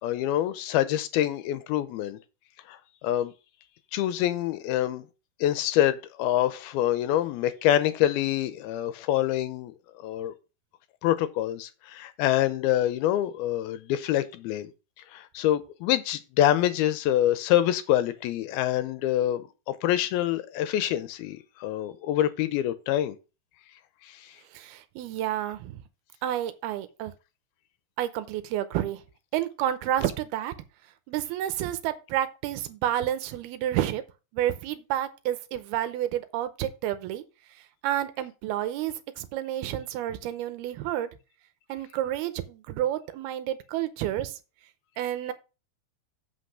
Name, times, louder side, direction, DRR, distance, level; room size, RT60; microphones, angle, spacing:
voice 1, 0.0-2.2 2.7-3.3 3.9-5.0 5.4-9.7 10.0-10.3 11.0-14.7 15.1-23.2 24.1-24.2, left 12 dB, 85° left, 2.5 m, -26 dB
voice 2, 24.5-25.8 26.2-27.1 28.0-29.0 29.3-30.5 31.1-34.0 34.3-37.2 37.8-41.1 41.7-44.4 45.0-45.3, right 12 dB, 85° right, 2.7 m, -30 dB
7.9 x 6.0 x 4.7 m
omnidirectional pair, 4.5 m